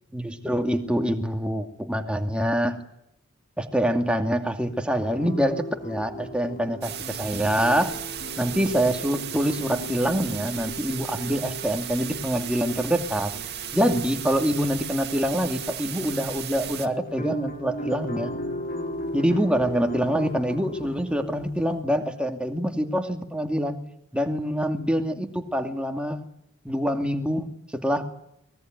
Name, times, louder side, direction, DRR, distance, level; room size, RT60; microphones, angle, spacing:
voice 1, 0.1-2.8 3.6-7.9 8.4-13.3 13.7-18.3 19.1-23.8 24.1-26.2 26.6-27.5 27.7-28.1, equal, 5° right, 4 dB, 2.5 m, -25 dB
sound 1, 5.1-21.8, equal, 45° left, 5.3 m, -38 dB
sound 2, 6.8-16.9, right 10 dB, 50° right, 2.2 m, -35 dB
25.0 x 21.0 x 9.4 m, 0.79 s
head